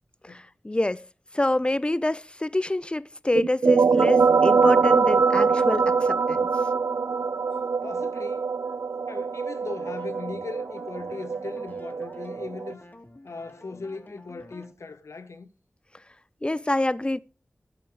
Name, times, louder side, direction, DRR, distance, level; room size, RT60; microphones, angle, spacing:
voice 1, 0.2-1.0 1.3-6.5 16.4-17.2, left 1 dB, 20° left, 0.6 m, -27 dB
sound 1, 3.3-12.7, right 5 dB, 70° right, 0.5 m, -23 dB
voice 2, 7.8-8.5 9.1-12.8 13.2-15.5, left 4 dB, 75° left, 1.1 m, -39 dB
sound 2, 9.7-14.7, left 1 dB, 35° left, 1.8 m, -49 dB
12.0 x 6.5 x 4.9 m
cardioid pair, 45°, 5 cm